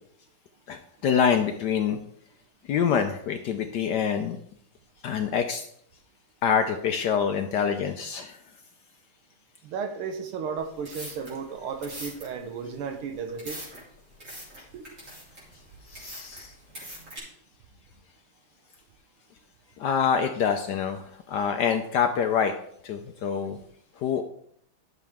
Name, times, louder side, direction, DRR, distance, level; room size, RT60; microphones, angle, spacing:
voice 1, 0.7-2.0 2.7-4.4 5.0-5.6 6.4-8.4 15.9-16.5 19.8-22.5 22.8-23.6 24.0-24.2, left 7 dB, 75° left, 6 dB, 1.0 m, -26 dB
voice 2, 9.6-13.6 14.7-15.0, right 6 dB, 85° right, 7 dB, 1.7 m, -34 dB
sound 1, 10.7-17.2, equal, 35° right, 3.8 m, -43 dB
11.0 x 6.7 x 3.5 m, 0.68 s
omnidirectional pair, 2.3 m